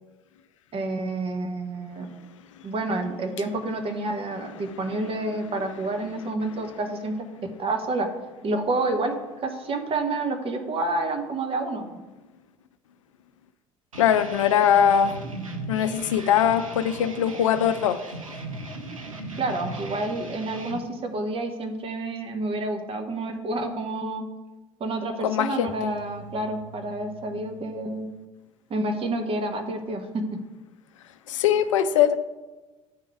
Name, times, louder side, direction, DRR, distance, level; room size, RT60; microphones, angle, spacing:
voice 1, 0.7-2.1 2.6-7.1 7.6-8.1 8.4-9.1 9.4-12.0 19.4-24.2 24.8-28.1 28.7-30.1, right 2 dB, 35° right, 5 dB, 1.1 m, -29 dB
sound 1, 13.9-20.8, right 2 dB, 85° right, 0.7 m, -37 dB
voice 2, 14.0-15.2 15.7-18.0 25.2-25.7 31.3-32.2, left 9 dB, 70° left, 12 dB, 0.4 m, -21 dB
sound 2, 25.7-28.2, right 3 dB, 25° left, 0.8 m, -47 dB
9.6 x 3.8 x 4.8 m, 1.2 s
figure-of-eight pair, 60°, 17 cm